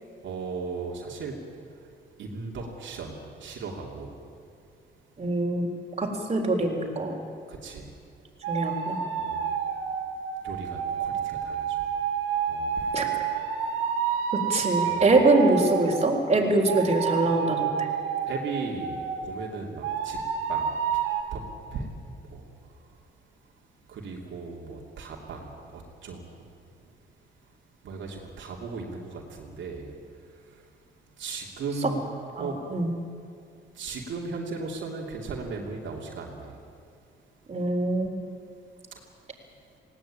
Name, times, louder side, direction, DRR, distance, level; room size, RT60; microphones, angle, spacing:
voice 1, 0.2-1.3 1.7-1.9 2.2-4.1 7.5-7.9 9.2-9.6 10.4-11.9 12.4-13.0 13.6-13.7 14.1-14.2 14.9-15.1 18.3-20.2 20.5-21.0 21.3-21.4 21.7-22.0 22.2-22.9 23.9-26.4 27.8-29.9 30.2-30.6 31.2-32.0 32.4-32.5 33.7-36.6 38.9-39.0, right 4 dB, 70° right, -1 dB, 2.9 m, -37 dB
voice 2, 5.2-5.7 6.0-7.2 8.5-9.0 12.9-13.1 14.3-17.9 31.8-31.9 32.3-32.9 37.5-38.2, right 2 dB, 30° right, 1 dB, 3.8 m, -24 dB
sound 1, 8.4-16.1 16.7-19.3 19.8-21.2, right 7 dB, 90° right, 2.8 m, -29 dB
19.5 x 17.5 x 8.7 m, 2.4 s
cardioid pair, 90°, 20 cm